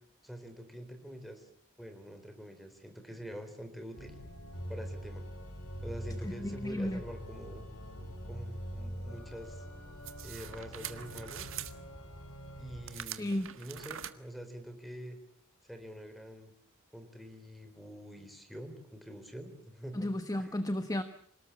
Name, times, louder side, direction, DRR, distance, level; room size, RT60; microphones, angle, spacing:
voice 1, 0.2-1.5 1.8-4.2 4.7-5.3 5.8-7.6 8.3-9.6 10.2-11.6 12.6-15.2 15.6-16.5 16.9-20.1 20.3-20.5, equal, ahead, 5 dB, 3.9 m, -46 dB
Organ, 3.9-13.2, equal, 70° left, 4.2 m, -44 dB
voice 2, 6.4-7.0 13.2-13.6 20.0-21.0, left 1 dB, 15° left, 9 dB, 1.1 m, -33 dB
sound 1, 10.0-11.7 12.9-14.1, right 11 dB, 65° right, 1.6 m, -43 dB
27.0 x 19.0 x 8.6 m, 0.62 s
head